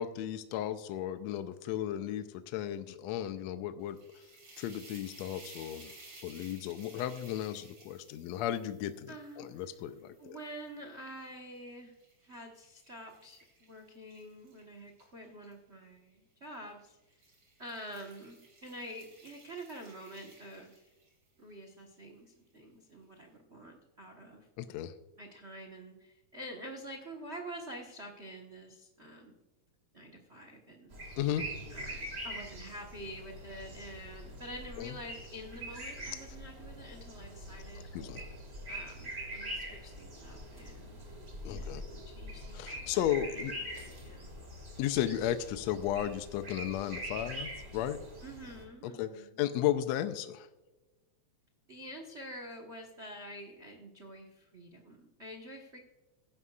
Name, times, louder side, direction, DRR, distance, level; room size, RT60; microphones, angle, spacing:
voice 1, 0.0-4.0 4.6-5.9 6.2-10.4 24.6-24.9 31.2-31.5 34.8-34.9 37.9-38.3 41.5-41.8 42.5-43.5 44.8-48.0 48.8-50.5, left 11 dB, 75° left, 10 dB, 1.7 m, -34 dB
sound 1, 3.8-11.0 11.6-15.5 16.4-16.7 17.1-21.3, right 2 dB, 40° right, 4.0 m, -57 dB
voice 2, 9.1-9.7 10.2-12.0 12.2-17.0 17.6-20.9 21.4-24.5 25.2-29.4 29.9-30.9 31.7-37.9 38.7-44.3 48.2-49.4 51.7-55.8, equal, 65° right, 3 dB, 0.6 m, -47 dB
A bird at baro hotel, 30.9-48.6, right 1 dB, 25° right, 1.9 m, -44 dB
15.5 x 11.0 x 2.4 m, 1.1 s
omnidirectional pair, 3.4 m